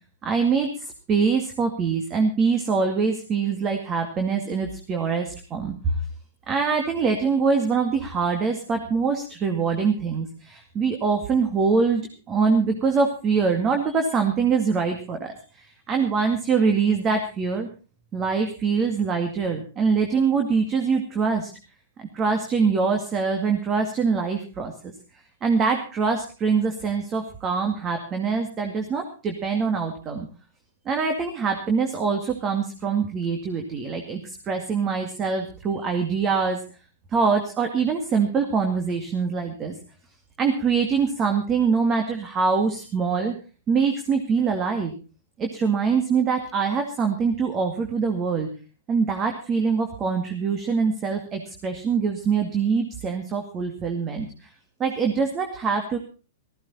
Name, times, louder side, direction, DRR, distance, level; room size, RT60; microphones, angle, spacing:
voice 1, 0.2-5.9 6.5-17.7 18.1-21.5 22.0-24.7 25.4-30.3 30.9-36.6 37.1-39.8 40.4-43.3 43.7-44.9 45.4-48.5 48.9-54.5 54.8-56.0, right 5 dB, 25° right, 5 dB, 2.2 m, -24 dB
15.0 x 15.0 x 4.2 m, 0.35 s
hypercardioid pair, 120°, 0 cm